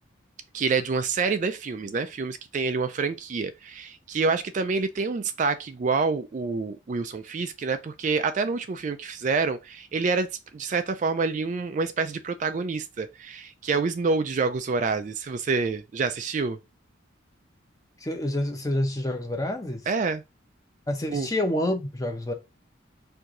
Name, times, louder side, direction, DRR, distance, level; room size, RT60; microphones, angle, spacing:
voice 1, 0.5-16.6 19.9-20.2 21.1-21.3, right 4 dB, 40° right, 0.3 m, -27 dB
voice 2, 18.0-19.8 20.9-22.3, left 1 dB, 20° left, 0.8 m, -28 dB
4.6 x 2.6 x 3.7 m
head